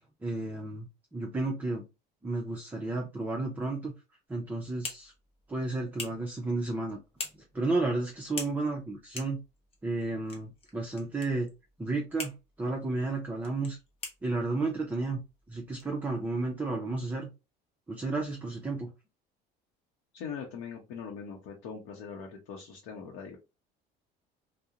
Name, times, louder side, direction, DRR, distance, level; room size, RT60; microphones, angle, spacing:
voice 1, 0.2-1.8 2.2-3.9 4.3-5.1 5.5-7.0 7.5-9.4 9.8-11.5 11.8-13.8 14.2-15.2 15.5-17.3 17.9-18.9, right 2 dB, 10° right, 0 dB, 0.4 m, -32 dB
sound 1, 4.3-16.7, left 3 dB, 30° left, 0.7 m, -47 dB
voice 2, 20.1-23.4, left 6 dB, 80° left, 0 dB, 0.7 m, -41 dB
2.4 x 2.0 x 2.7 m, 0.27 s
cardioid pair, 140°, 20 cm